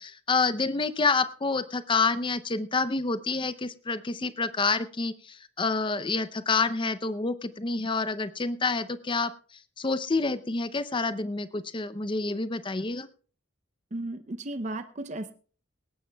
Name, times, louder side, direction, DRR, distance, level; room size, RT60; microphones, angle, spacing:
voice 1, 0.0-9.3 9.8-13.1, left 4 dB, 25° left, 13 dB, 0.6 m, -28 dB
voice 2, 13.9-15.3, right 1 dB, 35° right, 9 dB, 0.6 m, -34 dB
19.5 x 17.5 x 2.3 m, 0.40 s
head